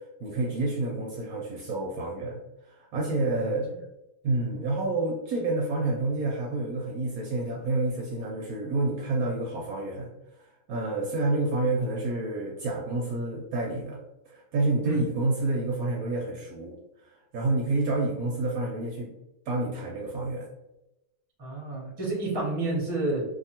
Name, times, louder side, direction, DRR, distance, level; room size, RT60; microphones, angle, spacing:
voice 1, 0.2-2.4 2.6-3.7 4.2-10.1 10.4-14.0 14.3-19.1 19.5-20.5, right 2 dB, 70° right, -1 dB, 0.9 m, -29 dB
voice 2, 3.3-3.8 14.8-15.0 21.4-23.2, right 2 dB, 25° right, -4 dB, 0.6 m, -30 dB
2.7 x 2.6 x 2.7 m, 0.90 s
omnidirectional pair, 1.8 m